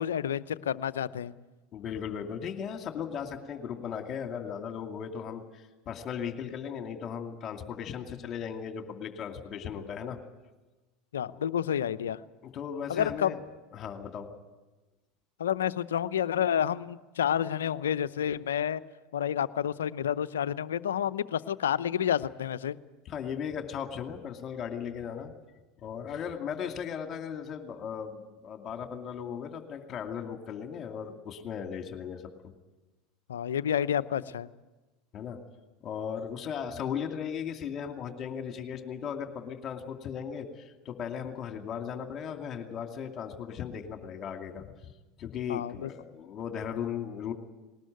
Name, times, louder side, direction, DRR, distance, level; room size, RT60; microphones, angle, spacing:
voice 1, 0.0-1.3 11.1-12.2 12.9-13.3 15.4-18.8 19.1-22.8 33.3-34.5 45.5-45.9, left 9 dB, 80° left, 16 dB, 0.7 m, -29 dB
voice 2, 1.7-10.2 11.2-11.4 12.5-13.4 13.7-14.3 23.1-25.3 25.8-32.2 35.1-35.4 35.8-44.7 45.2-47.3, left 7 dB, 40° left, 5 dB, 2.5 m, -37 dB
20.0 x 19.5 x 9.3 m, 1.1 s
hypercardioid pair, 80°, 0 cm